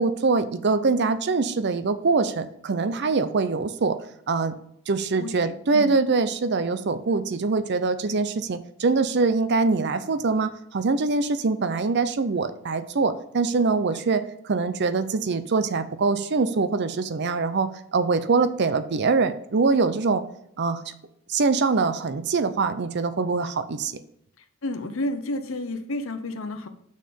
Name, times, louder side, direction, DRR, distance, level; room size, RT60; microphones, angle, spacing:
voice 1, 0.0-4.0 4.3-4.5 4.9-20.2 20.6-20.8 21.3-24.0, right 4 dB, 50° right, 12 dB, 0.5 m, -23 dB
voice 2, 5.2-5.9 24.6-26.7, left 1 dB, 65° left, 8 dB, 0.9 m, -31 dB
6.7 x 6.3 x 5.2 m, 0.73 s
head